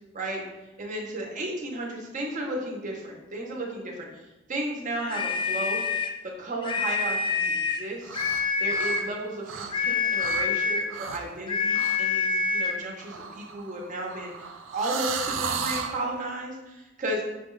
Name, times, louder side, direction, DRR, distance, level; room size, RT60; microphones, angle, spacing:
voice 1, 0.8-4.2 4.5-5.9 6.4-8.1 8.6-17.3, right 1 dB, 40° right, -1 dB, 0.8 m, -34 dB
sound 1, 5.1-6.2 6.6-7.9 8.1-9.1 9.7-10.9 11.5-12.8, left 5 dB, 25° left, 0.3 m, -26 dB
sound 2, 8.0-8.4 8.7-9.9 10.2-10.5 10.9-11.3 11.7-12.0 13.0-16.0, right 6 dB, 80° right, 0.4 m, -34 dB
6.2 x 2.3 x 3.1 m, 1.0 s
head